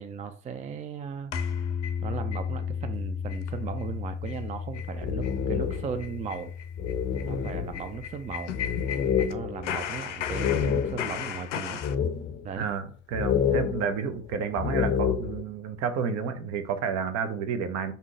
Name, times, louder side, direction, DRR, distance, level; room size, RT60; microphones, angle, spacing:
voice 1, 0.0-1.3 2.0-6.5 7.2-8.6 9.2-11.8 12.4-12.7, right 7 dB, 20° right, 0.4 m, -36 dB
sound 1, 1.3-2.4 2.8-2.9 3.3-3.5 3.8-3.9 4.2-4.4 4.7-4.9 5.2-5.4 5.7-9.3 9.6-11.9, left 9 dB, 80° left, 0.5 m, -36 dB
sound 2, 1.3-11.5, left 7 dB, 5° left, 1.4 m, -36 dB
sound 3, 4.7-6.1 6.5-6.6 6.8-11.3 11.8-12.6 13.1-15.4, left 7 dB, 30° left, 0.6 m, -28 dB
voice 2, 12.6-17.9, right 6 dB, 50° right, 0.9 m, -30 dB
3.7 x 2.8 x 4.7 m
hypercardioid pair, 70°, 35 cm